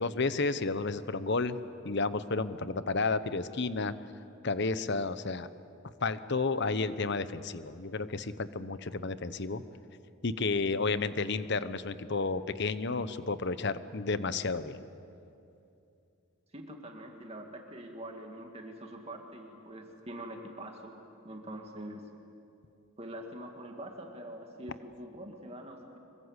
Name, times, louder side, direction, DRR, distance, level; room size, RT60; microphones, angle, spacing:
voice 1, 0.0-1.6 1.8-3.9 4.4-5.5 6.0-9.6 10.2-14.8, left 3 dB, 55° left, 13 dB, 0.9 m, -31 dB
voice 2, 16.5-22.0 23.0-26.0, right 1 dB, 30° right, 2 dB, 2.3 m, -44 dB
25.5 x 23.5 x 8.2 m, 2.7 s
head